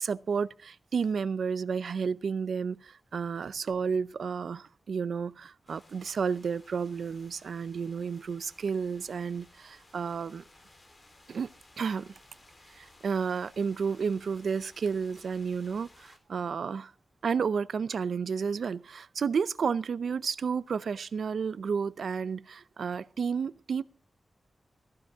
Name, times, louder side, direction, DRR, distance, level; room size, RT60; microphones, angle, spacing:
voice 1, 0.0-10.4 11.3-11.5 11.8-12.1 12.7-16.9 17.2-23.8, right 6 dB, 80° right, 0.6 m, -31 dB
sound 1, 5.7-16.2, left 2 dB, 35° left, 3.6 m, -58 dB
15.0 x 14.5 x 3.6 m
wide cardioid pair, 100°, 0 cm